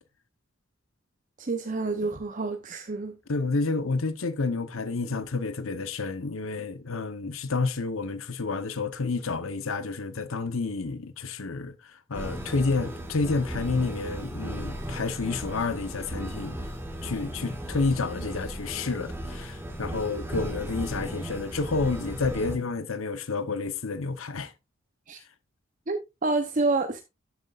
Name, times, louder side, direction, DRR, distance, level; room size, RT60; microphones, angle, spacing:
voice 1, 1.4-3.1 25.1-25.2 25.9-27.0, right 3 dB, 40° right, 0.7 m, -28 dB
voice 2, 3.3-16.6 17.0-24.5, left 3 dB, 75° left, 0.9 m, -30 dB
sound 1, 12.1-22.6, right 1 dB, 10° right, 1.6 m, -36 dB
12.0 x 8.1 x 2.4 m
head